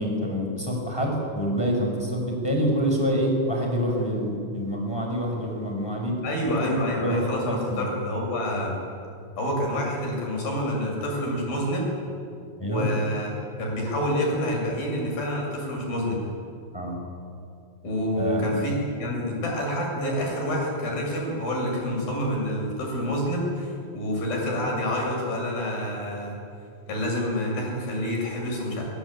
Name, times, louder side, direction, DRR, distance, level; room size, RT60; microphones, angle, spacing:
voice 1, 0.0-6.1 6.6-7.9 12.6-12.9 16.7-17.0 18.1-18.5, equal, 5° left, 0 dB, 6.1 m, -26 dB
voice 2, 6.2-8.8 9.4-11.9 12.6-13.3 13.6-16.2 17.8-18.7 19.0-26.3 26.9-28.8, equal, 55° left, -1 dB, 9.0 m, -27 dB
25.5 x 25.0 x 9.0 m, 2.5 s
omnidirectional pair, 5.2 m